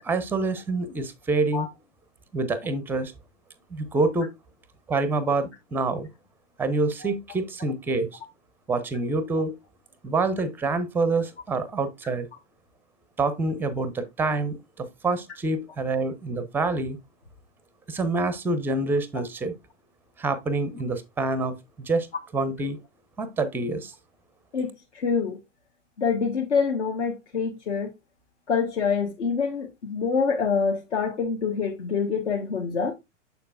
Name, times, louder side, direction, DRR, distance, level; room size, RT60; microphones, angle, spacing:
voice 1, 0.0-1.7 2.3-3.1 3.7-4.3 4.9-6.1 6.6-8.1 8.7-9.5 10.0-12.3 13.2-17.0 17.9-19.5 20.2-21.6 21.9-22.1 22.3-22.8 23.2-23.9, right 3 dB, 5° right, 0.5 m, -26 dB
voice 2, 24.5-25.4 26.0-27.9 28.5-32.9, left 5 dB, 65° left, 1.4 m, -26 dB
6.9 x 6.5 x 2.4 m
figure-of-eight pair, 100°, 38 cm